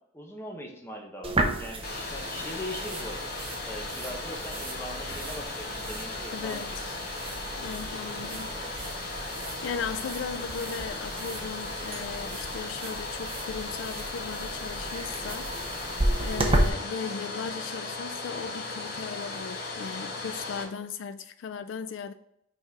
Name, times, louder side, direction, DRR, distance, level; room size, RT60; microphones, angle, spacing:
voice 1, 0.1-3.2 3.6-6.8, left 1 dB, 15° left, 1.0 m, -40 dB
sound 1, 1.2-16.7, right 1 dB, 30° right, 0.8 m, -33 dB
Domestic sounds home sounds, 1.8-20.6, left 3 dB, 55° left, 1.3 m, -37 dB
voice 2, 6.3-7.0 7.6-8.5 9.6-22.1, left 6 dB, 80° left, 0.4 m, -37 dB
5.9 x 4.1 x 4.6 m
head